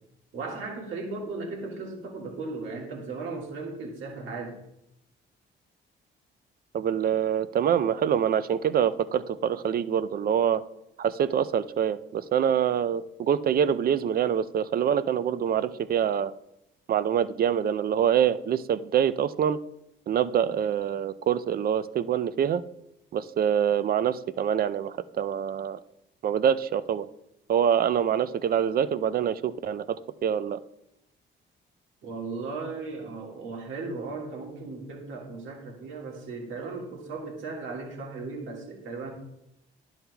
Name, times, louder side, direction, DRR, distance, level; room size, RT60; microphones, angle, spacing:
voice 1, 0.3-4.6 32.0-39.1, right 3 dB, 80° right, -1 dB, 1.8 m, -36 dB
voice 2, 6.7-10.6 11.0-16.3 16.9-19.6 20.1-22.6 23.1-25.8 26.2-27.1 27.5-30.6, right 9 dB, 50° right, 15 dB, 0.4 m, -25 dB
11.0 x 7.2 x 2.3 m, 0.83 s
cardioid pair, 90°, 20 cm